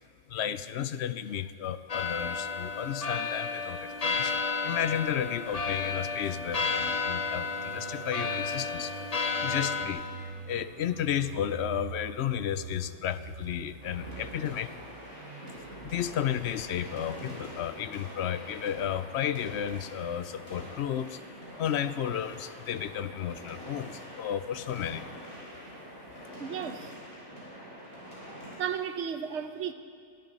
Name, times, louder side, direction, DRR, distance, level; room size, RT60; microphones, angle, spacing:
voice 1, 0.3-4.4 4.6-9.1 9.4-14.7 15.8-21.2 21.6-25.1, left 10 dB, 70° left, 0.8 m, -33 dB
sound 1, 1.9-9.9, left 4 dB, 35° left, 1.0 m, -32 dB
sound 2, 6.3-18.6 18.9-19.1, right 7 dB, 55° right, 0.8 m, -46 dB
sound 3, 13.8-28.6, equal, 50° left, 5.4 m, -45 dB
voice 2, 26.4-26.9 28.6-29.7, right 8 dB, 75° right, 1.1 m, -34 dB
22.5 x 13.0 x 4.0 m
omnidirectional pair, 1.2 m